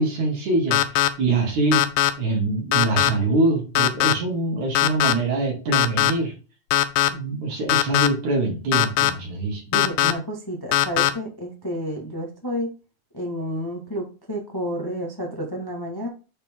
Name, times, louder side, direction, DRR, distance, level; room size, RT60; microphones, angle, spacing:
voice 1, 0.0-1.9 2.2-6.3 7.1-9.6, right 2 dB, 75° right, -1 dB, 4.2 m, -24 dB
sound 1, 0.7-1.1 1.7-2.1 2.7-3.1 3.7-4.1 4.7-5.1 5.7-6.1 6.7-7.1 7.7-8.1 8.7-9.1 9.7-10.1 10.7-11.1, left 13 dB, 85° left, 2.1 m, -19 dB
voice 2, 9.7-12.7 13.1-16.1, equal, 15° left, 0 dB, 0.9 m, -30 dB
8.7 x 4.4 x 3.7 m, 0.33 s
omnidirectional pair, 3.5 m